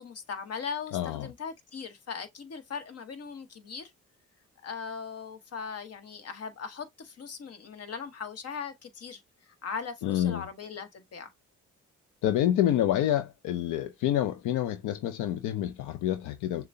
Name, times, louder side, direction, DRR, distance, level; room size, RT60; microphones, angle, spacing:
voice 1, 0.0-3.9 4.6-11.3, left 6 dB, 55° left, 1.1 m, -39 dB
voice 2, 0.9-1.3 10.0-10.4 12.2-16.7, left 12 dB, 85° left, 0.6 m, -28 dB
6.5 x 2.2 x 2.6 m
cardioid pair, 90°, 30 cm